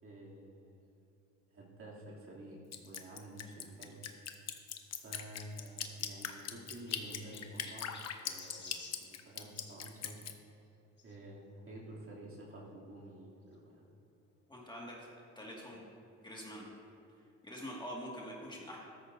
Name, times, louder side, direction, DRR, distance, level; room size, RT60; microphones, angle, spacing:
voice 1, 0.0-1.1 1.5-2.6 2.8-4.0 5.0-10.2 11.0-13.8, right 1 dB, 45° right, -5 dB, 3.0 m, -50 dB
Drip, 2.7-10.3, left 8 dB, 55° left, 0.9 m, -40 dB
Chirp tweet, 5.5-9.8 11.0-11.2 11.9-12.0 12.2-12.3 13.5-13.6, left 4 dB, 35° left, 1.3 m, -55 dB
voice 2, 14.5-15.1 15.4-15.8 16.2-16.7 17.4-18.8, equal, 15° left, -4 dB, 2.1 m, -45 dB
13.5 x 13.0 x 2.7 m, 2.5 s
cardioid pair, 90°, 30 cm